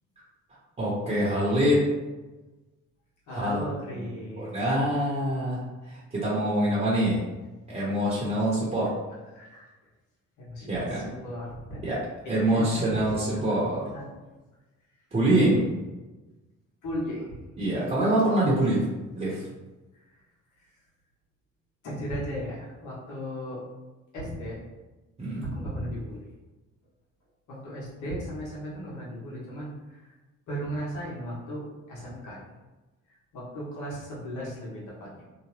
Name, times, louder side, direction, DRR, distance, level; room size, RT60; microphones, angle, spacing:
voice 1, 0.8-1.8 3.3-7.2 7.7-8.9 10.7-11.1 11.8-12.0 12.3-13.8 15.1-15.8 17.6-18.8 19.1-19.5 25.2-25.5, right 1 dB, 25° right, -7 dB, 0.9 m, -25 dB
voice 2, 3.3-4.5 9.3-9.7 10.4-11.9 12.4-13.4 13.9-14.0 16.8-17.3 21.8-23.6 24.1-24.6 25.4-26.2 27.5-30.1 30.5-32.4 33.3-35.2, equal, 75° left, -6 dB, 1.2 m, -36 dB
2.9 x 2.1 x 2.9 m, 1.1 s
cardioid pair, 90°, 30 cm